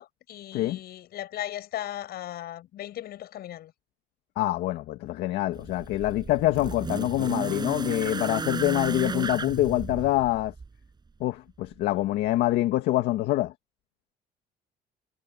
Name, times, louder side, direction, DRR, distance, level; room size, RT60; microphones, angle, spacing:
voice 1, 0.0-3.7, left 13 dB, 70° left, 7.1 m, -37 dB
voice 2, 4.3-10.5 11.2-13.5, left 15 dB, 85° left, 1.8 m, -25 dB
sound 1, 5.5-10.8 11.8-11.9, right 4 dB, 25° right, 6.2 m, -34 dB
cardioid pair, 110°, 17 cm